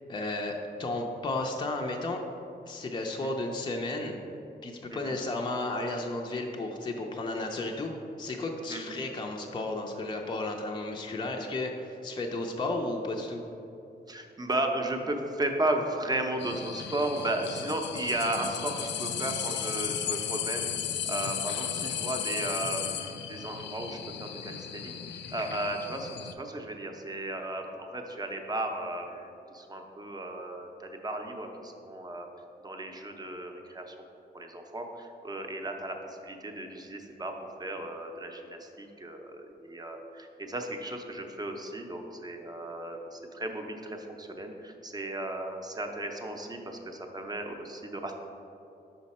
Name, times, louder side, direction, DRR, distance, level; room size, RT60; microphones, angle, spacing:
voice 1, 0.1-2.2 2.7-4.2 4.6-7.9 8.2-13.4, left 2 dB, 25° left, 1 dB, 0.5 m, -33 dB
voice 2, 14.1-20.7 21.1-32.3 32.6-33.9 34.3-37.3 37.6-48.1, right 1 dB, 20° right, 3 dB, 0.6 m, -35 dB
sound 1, 16.4-26.3, left 8 dB, 85° left, 0.4 m, -35 dB
5.7 x 5.3 x 4.2 m, 2.8 s
wide cardioid pair, 125°, 18 cm